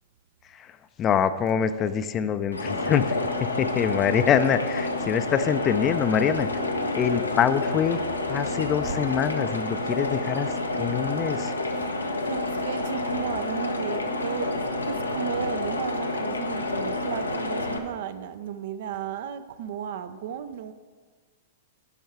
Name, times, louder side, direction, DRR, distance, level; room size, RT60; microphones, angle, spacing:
voice 1, 0.5-6.5 6.9-8.0 8.3-11.5, left 8 dB, 30° left, 0.5 m, -25 dB
sound 1, 2.5-17.8, left 2 dB, 90° left, 0.8 m, -29 dB
sound 2, 6.1-9.7, left 4 dB, 70° left, 1.4 m, -39 dB
voice 2, 12.2-20.7, right 9 dB, 55° right, 0.5 m, -34 dB
10.5 x 5.4 x 4.8 m
figure-of-eight pair, 105°, 0 cm